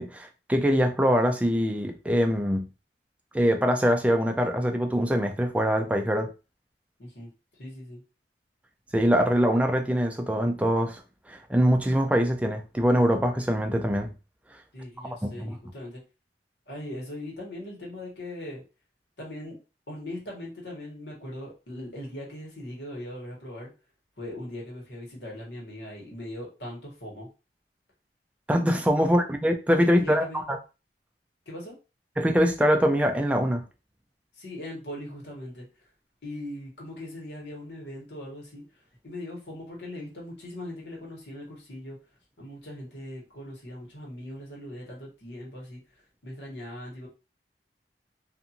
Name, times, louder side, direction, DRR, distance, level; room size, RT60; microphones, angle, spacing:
voice 1, 0.0-2.7 3.3-6.3 8.9-11.0 11.3-14.1 15.2-15.5 28.5-30.4 32.2-33.6, equal, 10° right, 0.3 m, -23 dB
voice 2, 7.0-7.3 7.6-8.0 14.7-16.0 16.7-18.6 19.2-19.6 19.9-23.7 24.2-27.3 29.0-29.2 30.0-30.4 31.5-31.7 34.3-35.7 36.2-38.6 39.0-42.0 42.4-45.8 46.2-47.1, left 1 dB, 85° left, 1.2 m, -40 dB
2.5 x 2.5 x 2.7 m
head